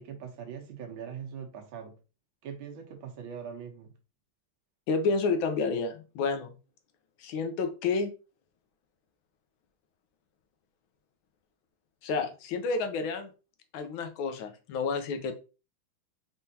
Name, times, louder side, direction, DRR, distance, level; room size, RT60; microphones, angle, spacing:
voice 1, 0.0-1.9 2.4-3.9, right 7 dB, 70° right, 1.6 m, -41 dB
voice 2, 4.9-6.6 7.2-8.1 12.0-13.3 13.7-15.3, left 4 dB, 75° left, 1.4 m, -30 dB
4.4 x 3.6 x 2.7 m
omnidirectional pair, 2.3 m